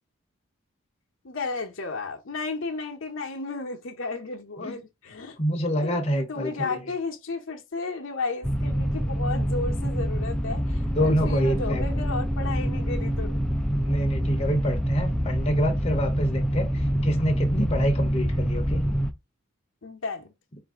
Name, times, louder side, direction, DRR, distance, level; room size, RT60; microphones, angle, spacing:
voice 1, 1.2-5.4 5.8-13.4 19.8-20.3, left 3 dB, 65° left, 0.8 m, -33 dB
voice 2, 5.4-6.9 10.9-11.8 13.8-18.8, equal, 30° left, 0.7 m, -27 dB
sound 1, 8.4-19.1, equal, 5° left, 0.3 m, -26 dB
4.0 x 2.6 x 3.5 m
head